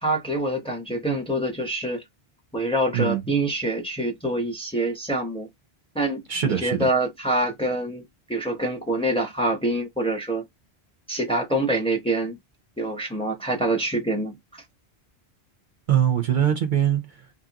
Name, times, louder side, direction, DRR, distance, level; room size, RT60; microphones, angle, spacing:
voice 1, 0.0-2.0 2.5-5.5 5.9-8.0 8.3-10.4 11.1-12.4 12.8-14.6, right 1 dB, 5° left, 0.8 m, -25 dB
voice 2, 6.3-6.9 15.9-17.2, right 9 dB, 55° right, 0.7 m, -22 dB
2.8 x 2.4 x 2.8 m
omnidirectional pair, 1.1 m